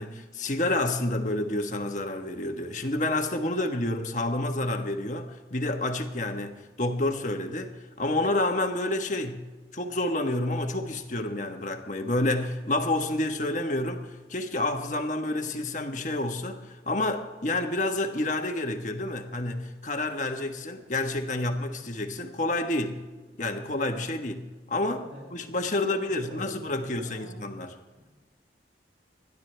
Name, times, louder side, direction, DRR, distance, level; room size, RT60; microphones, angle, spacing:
voice 1, 0.0-23.0 23.4-27.8, left 2 dB, 40° left, 1.3 m, -29 dB
voice 2, 26.2-27.3 28.0-28.2, right 1 dB, 65° right, 5.9 m, -45 dB
28.0 x 12.0 x 3.4 m
head